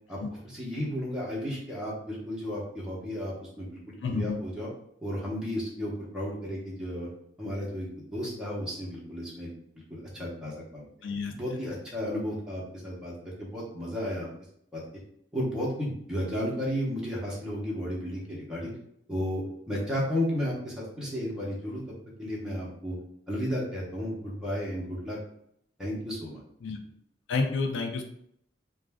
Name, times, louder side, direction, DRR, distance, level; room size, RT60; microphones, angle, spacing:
voice 1, 0.4-4.7 5.0-7.1 7.4-9.5 9.9-10.8 11.3-14.3 14.7-14.8 15.3-18.7 19.1-21.8 22.2-23.0 23.3-25.2 25.8-26.4, equal, 5° right, -6 dB, 0.7 m, -33 dB
voice 2, 4.0-4.4 11.0-11.3 26.6-26.8 27.3-28.1, left 4 dB, 75° left, 4 dB, 0.4 m, -29 dB
2.4 x 2.2 x 3.3 m, 0.70 s
head